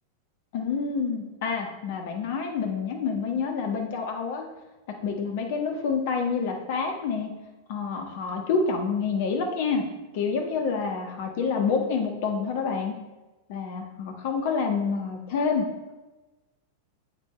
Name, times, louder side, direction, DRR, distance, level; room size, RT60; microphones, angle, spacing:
voice 1, 0.5-4.4 5.0-7.3 7.7-9.9 10.1-12.9 13.5-15.6, left 5 dB, 50° left, 3 dB, 1.4 m, -28 dB
9.6 x 7.7 x 3.3 m, 1.1 s
figure-of-eight pair, 90°, 0 cm